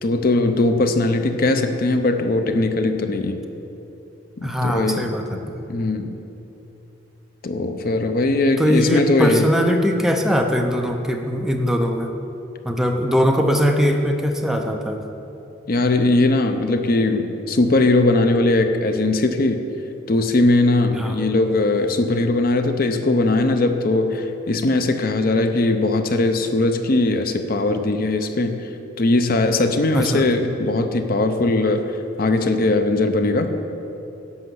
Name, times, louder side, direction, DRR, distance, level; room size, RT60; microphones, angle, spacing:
voice 1, 0.0-3.4 4.4-5.4 5.7-6.1 7.4-9.5 15.7-19.6 20.1-28.7 29.0-33.5, left 2 dB, 50° left, 7 dB, 0.6 m, -20 dB
voice 2, 4.4-5.4 8.6-12.1 12.6-15.0 20.9-21.1 29.9-30.2, equal, ahead, 3 dB, 0.6 m, -21 dB
11.0 x 5.6 x 7.9 m, 3.0 s
head